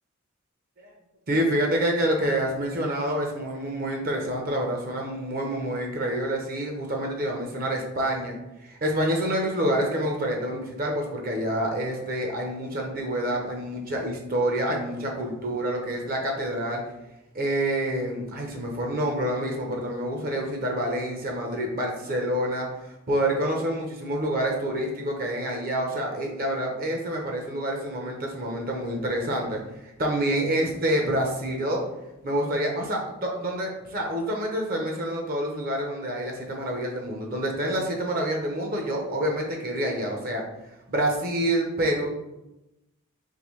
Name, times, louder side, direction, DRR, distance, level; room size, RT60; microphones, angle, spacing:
voice 1, 1.3-8.4 8.6-16.8 17.3-31.8 32.2-40.4 40.9-42.1, right 1 dB, 45° right, 1 dB, 0.7 m, -27 dB
3.8 x 3.1 x 3.1 m, 0.92 s
head